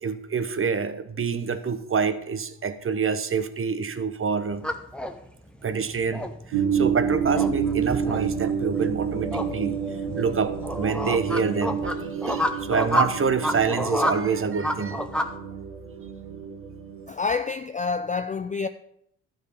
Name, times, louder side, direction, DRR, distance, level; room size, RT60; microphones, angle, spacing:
voice 1, 0.0-4.6 5.6-9.8 10.2-15.0, right 5 dB, 30° right, 0.9 m, -27 dB
sound 1, 4.5-15.3, left 1 dB, ahead, 0.9 m, -30 dB
sound 2, 6.5-17.1, right 7 dB, 65° right, 1.3 m, -29 dB
voice 2, 17.1-18.7, left 4 dB, 20° left, 0.4 m, -27 dB
12.0 x 5.0 x 5.1 m
hypercardioid pair, 50°, 43 cm